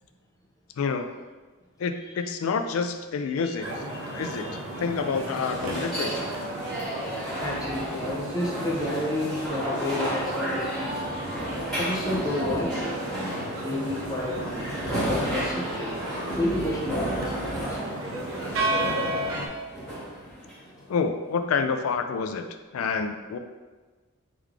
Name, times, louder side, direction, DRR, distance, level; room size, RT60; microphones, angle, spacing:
voice 1, 1.8-3.7 4.1-4.5 4.8-6.1 20.9-22.4 22.7-23.4, left 5 dB, 75° left, 7 dB, 0.4 m, -28 dB
sound 1, 3.6-19.5, right 1 dB, 70° right, 0.6 m, -34 dB
voice 2, 3.9-4.6 7.4-11.0 11.8-13.0 13.6-14.3 14.9-15.9 16.4-17.3, left 1 dB, 15° left, -4 dB, 0.5 m, -31 dB
sound 2, 3.9-21.0, equal, ahead, 1.3 m, -33 dB
3.8 x 3.1 x 3.4 m, 1.3 s
head